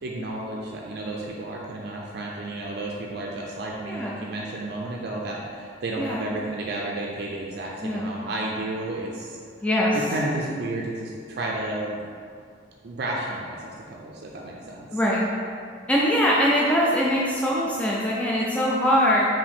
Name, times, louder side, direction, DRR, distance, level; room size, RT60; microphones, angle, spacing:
voice 1, 0.0-9.4 9.9-12.0 12.8-14.9, right 2 dB, 55° right, -2 dB, 0.4 m, -32 dB
voice 2, 3.9-4.2 6.0-6.2 7.8-8.1 9.6-10.0 14.9-15.3 15.9-19.3, equal, 5° left, -5 dB, 0.3 m, -22 dB
5.0 x 2.7 x 3.5 m, 2.2 s
head